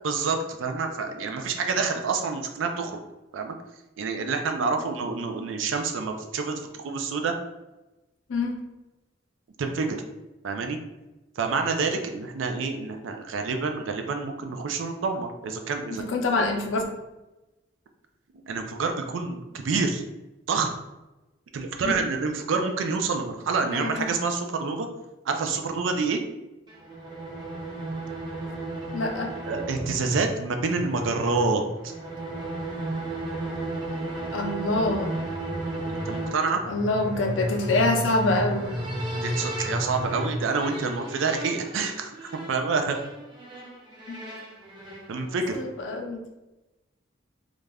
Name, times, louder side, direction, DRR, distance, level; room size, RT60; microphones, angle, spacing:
voice 1, 0.0-3.0 3.3-3.5 4.0-7.3 9.6-10.0 10.4-10.8 11.4-16.0 18.4-20.0 20.5-20.7 21.5-24.9 25.2-26.2 29.5-31.9 36.1-36.6 39.1-43.0 45.1-45.6, right 4 dB, 90° right, 5 dB, 0.4 m, -27 dB
voice 2, 15.9-16.8 21.8-21.9 23.7-24.1 28.9-29.3 34.3-35.1 36.7-38.7 44.1-44.2 45.5-46.2, left 2 dB, 75° left, 3 dB, 0.5 m, -25 dB
sound 1, 26.7-45.7, right 1 dB, 25° right, 0.6 m, -33 dB
2.5 x 2.2 x 3.3 m, 1.0 s
head